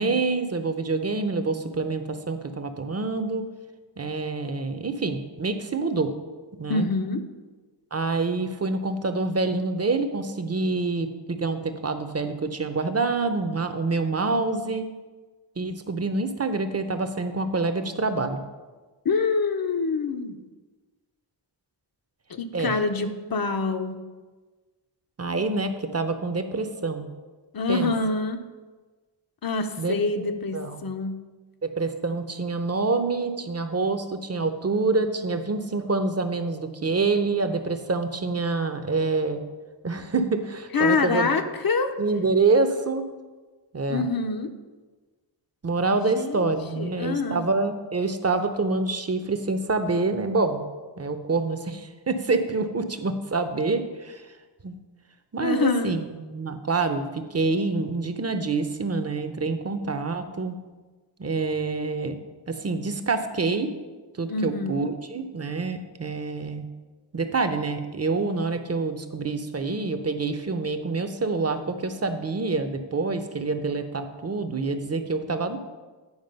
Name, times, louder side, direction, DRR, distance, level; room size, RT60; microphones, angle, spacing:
voice 1, 0.0-3.5 4.0-6.1 6.6-6.9 7.9-14.9 15.6-18.4 22.5-22.8 25.2-27.1 27.7-27.9 29.8-30.3 30.5-30.9 31.6-39.4 39.8-41.4 42.0-43.0 43.7-44.1 45.6-50.6 51.0-54.3 54.6-54.8 55.3-60.6 61.2-62.2 62.5-63.7 64.2-66.6 67.1-75.6, right 3 dB, 35° right, 8 dB, 0.7 m, -26 dB
voice 2, 6.7-7.2 19.0-20.4 22.3-24.0 27.5-28.4 29.4-31.2 40.7-41.9 43.9-44.5 46.0-46.5 46.8-47.4 55.4-55.9 64.3-64.9, left 4 dB, 50° left, 7 dB, 0.7 m, -26 dB
9.6 x 4.8 x 5.3 m, 1.3 s
wide cardioid pair, 100°, 44 cm